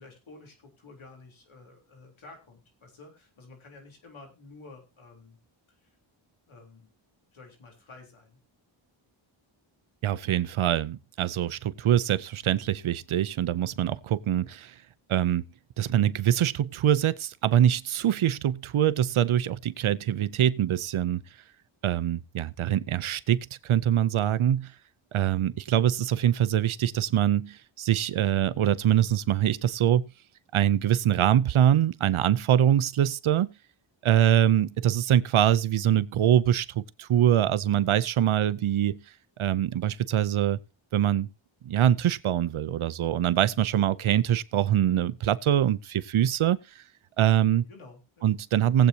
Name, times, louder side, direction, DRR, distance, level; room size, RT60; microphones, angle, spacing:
voice 1, 0.0-5.4 5.7-6.0 6.5-6.9 7.3-8.4 47.7-48.3, left 3 dB, 75° left, 3.7 m, -51 dB
voice 2, 10.0-14.7 15.1-15.4 15.8-21.2 21.8-24.7 25.1-30.1 30.5-33.5 34.0-39.0 39.4-40.6 40.9-41.3 41.6-46.6 47.2-47.6 48.2-48.9, right 11 dB, 80° right, 0.7 m, -24 dB
19.5 x 8.2 x 2.8 m
wide cardioid pair, 80°, 49 cm